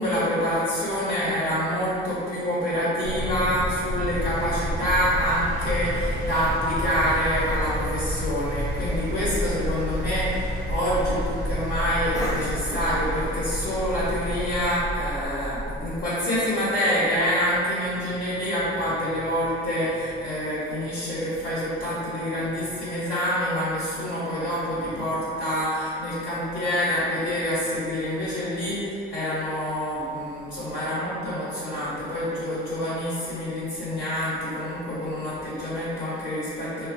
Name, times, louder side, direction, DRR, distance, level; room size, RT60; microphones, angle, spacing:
voice 1, 0.0-36.9, equal, 40° left, -10 dB, 0.8 m, -26 dB
sound 1, 3.0-16.1, equal, 70° left, 0.7 m, -31 dB
Engine, 4.0-14.8, right 2 dB, 85° right, 0.6 m, -38 dB
Cough, 10.1-15.5, equal, 15° left, 0.5 m, -39 dB
3.3 x 2.2 x 2.5 m, 2.5 s
cardioid pair, 90°, 20 cm